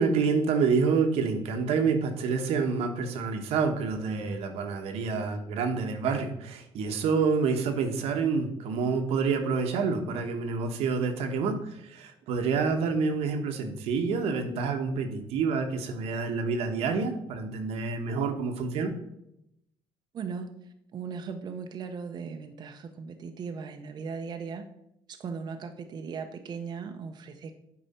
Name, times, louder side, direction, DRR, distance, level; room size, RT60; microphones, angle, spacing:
voice 1, 0.0-11.6 11.9-18.9, right 5 dB, 85° right, 5 dB, 1.1 m, -28 dB
voice 2, 20.1-24.7 25.1-27.5, right 5 dB, 45° right, 5 dB, 0.7 m, -38 dB
8.7 x 4.9 x 4.2 m, 0.81 s
cardioid pair, 130°, 10 cm